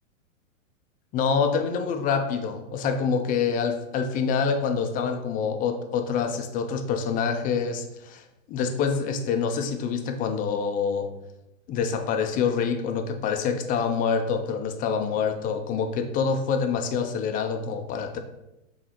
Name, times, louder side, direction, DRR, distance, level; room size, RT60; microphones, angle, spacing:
voice 1, 1.1-11.1 11.7-18.2, left 6 dB, 20° left, 6 dB, 0.5 m, -26 dB
6.1 x 4.1 x 4.4 m, 0.92 s
hypercardioid pair, 120°, 41 cm